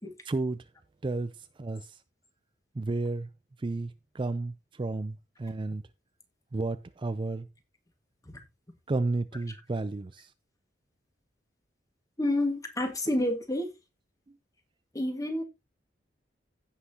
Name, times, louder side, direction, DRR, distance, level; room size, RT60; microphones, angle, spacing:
voice 1, 0.3-0.6 1.0-2.0 2.7-3.3 3.6-5.8 6.5-7.5 8.9-10.3, right 2 dB, 30° right, 0.4 m, -32 dB
voice 2, 12.2-13.7 14.9-15.4, left 1 dB, 20° left, 1.7 m, -29 dB
16.0 x 5.7 x 2.8 m
head